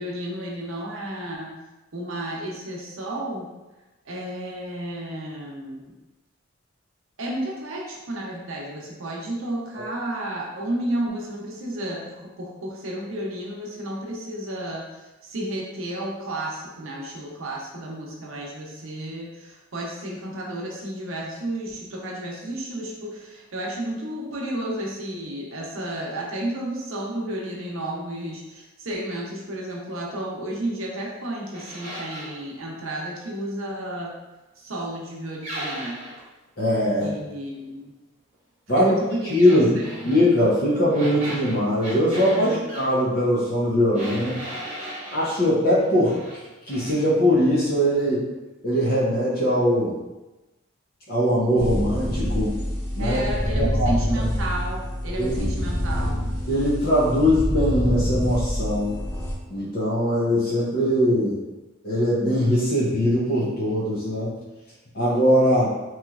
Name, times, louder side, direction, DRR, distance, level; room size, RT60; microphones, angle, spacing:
voice 1, 0.0-1.5 1.9-3.5 4.1-5.8 7.2-34.2 34.6-36.0 37.0-37.9 38.8-40.2 42.3-42.6 53.0-56.2, right 1 dB, 75° right, -2 dB, 0.7 m, -32 dB
sound 1, 31.5-32.4 35.4-36.2 39.3-40.2 40.9-42.9 43.9-45.3 45.8-46.4 46.7-47.0, right 1 dB, 30° right, 0.9 m, -36 dB
voice 2, 36.6-37.1 38.7-39.0 39.3-44.4 45.1-46.2 46.7-48.2 48.6-49.9 51.1-52.5 52.9-53.2 53.6-53.9 55.2-55.5 56.5-59.0 59.5-61.4 61.8-64.3 64.9-65.7, equal, 45° left, -7 dB, 0.7 m, -21 dB
sound 2, 51.6-59.3, equal, 10° left, 0.4 m, -26 dB
3.1 x 2.8 x 2.4 m, 1.1 s
head